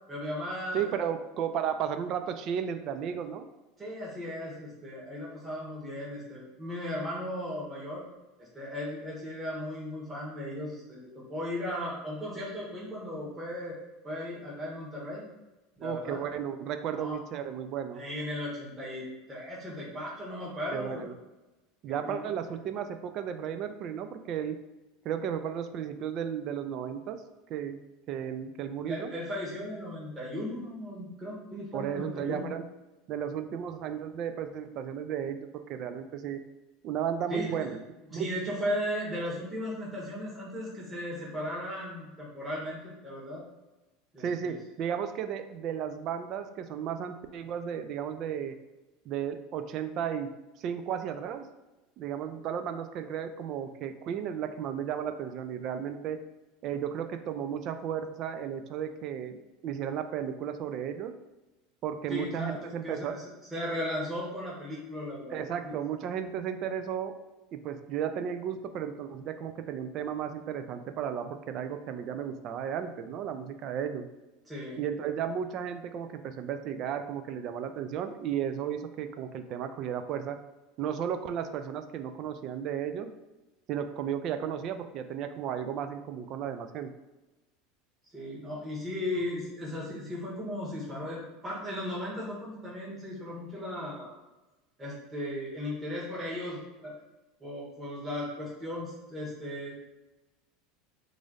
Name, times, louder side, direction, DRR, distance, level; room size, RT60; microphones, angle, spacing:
voice 1, 0.1-0.9 3.8-8.1 8.4-13.7 14.0-15.2 15.8-16.2 16.9-17.2 17.9-21.0 21.9-22.3 28.8-32.4 37.3-37.7 38.1-43.4 44.1-44.6 62.1-63.2 63.5-65.4 65.6-65.7 74.5-74.8 88.1-94.1 94.8-96.9 97.4-99.7, left 1 dB, 20° right, -6 dB, 1.3 m, -36 dB
voice 2, 0.7-3.5 15.8-18.0 20.7-21.2 21.8-24.6 25.0-27.2 27.5-27.8 28.1-29.1 31.7-32.6 33.1-36.4 36.8-37.8 38.1-38.3 44.2-48.6 49.1-50.3 50.6-51.5 52.0-56.2 56.6-59.4 59.6-61.1 61.8-63.2 65.3-67.2 67.5-74.1 74.8-80.4 80.8-83.1 83.7-86.9, right 8 dB, 50° right, 9 dB, 0.4 m, -34 dB
3.1 x 2.5 x 3.9 m, 1.1 s
hypercardioid pair, 90°, 0 cm